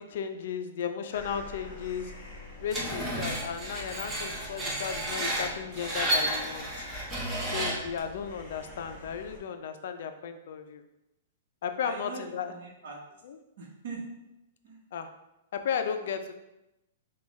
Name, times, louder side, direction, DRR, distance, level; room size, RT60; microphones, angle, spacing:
voice 1, 0.0-2.1 2.6-6.9 7.4-10.8 11.6-12.5 13.2-13.4 14.9-15.1 15.5-16.3, left 7 dB, 50° left, 7 dB, 0.4 m, -35 dB
sound 1, 1.1-9.4, left 2 dB, 20° left, 1.3 m, -46 dB
Screech, 2.7-8.0, right 1 dB, 10° right, 0.5 m, -32 dB
voice 2, 11.8-13.0 13.6-14.0 14.6-14.8 16.1-16.3, right 4 dB, 50° right, -3 dB, 1.0 m, -42 dB
6.9 x 2.3 x 3.1 m, 0.92 s
hypercardioid pair, 180°, 0 cm